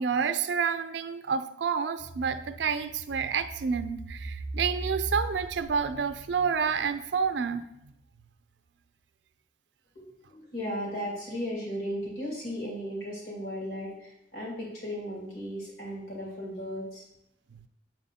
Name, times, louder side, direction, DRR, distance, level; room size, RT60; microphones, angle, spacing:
voice 1, 0.0-7.6 17.5-17.6, right 6 dB, 85° right, 10 dB, 0.5 m, -29 dB
sound 1, 2.0-7.6 8.0-8.1, right 2 dB, 35° left, 0.8 m, -40 dB
voice 2, 9.9-17.0, equal, 65° left, -4 dB, 2.6 m, -36 dB
6.7 x 4.3 x 4.2 m, 0.81 s
head